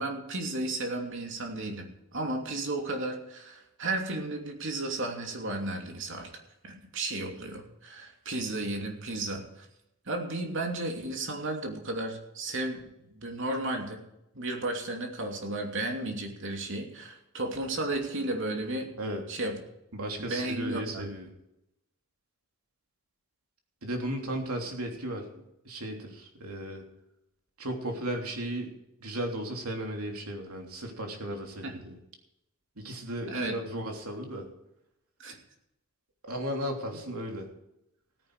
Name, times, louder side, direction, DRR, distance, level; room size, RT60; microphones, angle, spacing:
voice 1, 0.0-6.3 6.6-9.7 10.1-14.0 14.3-18.9 19.3-19.6 20.2-21.2 31.6-31.8 33.3-33.6 35.2-35.4 36.9-37.0, right 2 dB, 60° right, 3 dB, 2.8 m, -34 dB
voice 2, 19.9-21.3 23.8-25.3 25.6-26.8 27.6-28.7 29.0-32.0 32.8-34.4 36.3-37.5, right 1 dB, 85° right, 2 dB, 3.2 m, -35 dB
16.5 x 9.9 x 4.9 m, 0.85 s
head